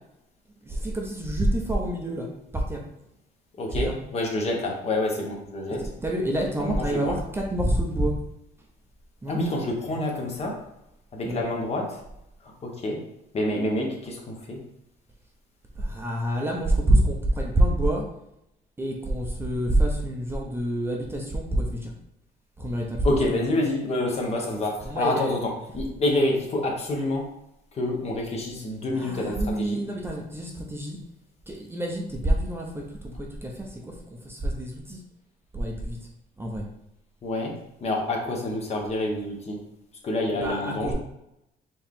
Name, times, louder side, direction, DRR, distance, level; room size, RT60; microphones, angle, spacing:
voice 1, 0.6-2.9 3.7-4.0 5.8-8.2 9.2-9.4 11.2-11.4 15.7-18.1 18.8-21.9 22.6-23.0 23.3-23.4 24.8-25.4 28.9-31.0 31.5-35.0 35.5-36.0 36.4-36.6 40.3-40.9, right 1 dB, 15° right, 0 dB, 0.8 m, -27 dB
voice 2, 3.6-5.9 6.6-7.2 9.3-10.6 11.1-12.0 12.6-13.0 13.3-14.6 23.0-27.3 27.7-29.8 37.2-39.6 40.0-40.9, left 2 dB, 40° left, 0 dB, 1.3 m, -27 dB
4.6 x 3.2 x 3.7 m, 0.83 s
cardioid pair, 110°, 17 cm